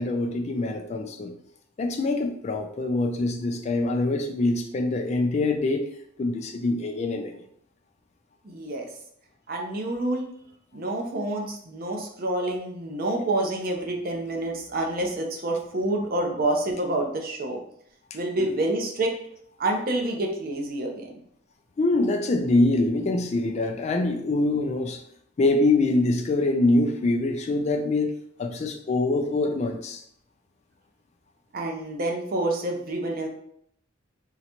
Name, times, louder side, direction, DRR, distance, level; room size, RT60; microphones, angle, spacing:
voice 1, 0.0-1.3 1.8-5.8 6.2-7.3 21.8-25.0 25.4-28.1 28.4-30.0, left 2 dB, 35° left, 4 dB, 0.3 m, -24 dB
voice 2, 8.4-8.9 9.5-10.3 10.7-17.6 18.1-19.1 19.6-21.1 31.5-33.3, right 1 dB, 45° right, 1 dB, 0.6 m, -28 dB
3.8 x 2.1 x 2.9 m, 0.68 s
head